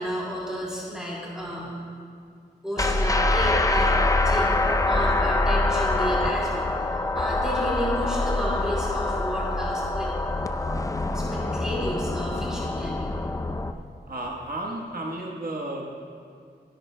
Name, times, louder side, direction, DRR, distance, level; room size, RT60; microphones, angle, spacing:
voice 1, 0.0-1.7 2.6-4.0 4.2-6.7 7.1-10.1 11.1-13.1, equal, 5° right, -7 dB, 3.2 m, -32 dB
sound 1, 2.8-13.7, left 2 dB, 20° left, 0.5 m, -25 dB
voice 2, 14.1-15.9, right 1 dB, 55° right, -2 dB, 1.3 m, -33 dB
29.0 x 10.5 x 2.2 m, 2.3 s
wide cardioid pair, 125°, 18 cm